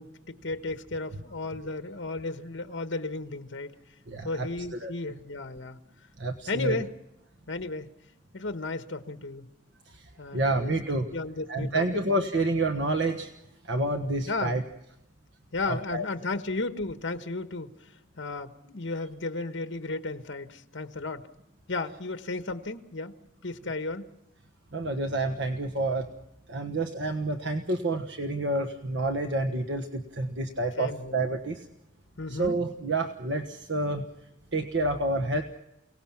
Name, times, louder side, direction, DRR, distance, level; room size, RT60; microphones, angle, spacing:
voice 1, 0.0-3.8 4.2-5.8 6.5-6.9 7.5-7.9 8.3-9.5 10.2-10.8 11.1-12.0 14.3-14.6 15.5-17.9 18.2-21.3 21.7-23.1 23.4-24.1 30.8-31.3 32.2-32.6, left 3 dB, 65° left, 8 dB, 1.3 m, -34 dB
voice 2, 4.1-4.5 4.8-4.9 6.2-6.7 9.9-11.0 11.5-13.3 13.6-14.6 15.7-16.0 24.7-26.1 26.5-31.6 32.3-34.0 34.5-35.4, right 2 dB, 65° right, 5 dB, 1.4 m, -29 dB
29.5 x 18.5 x 6.0 m, 0.87 s
head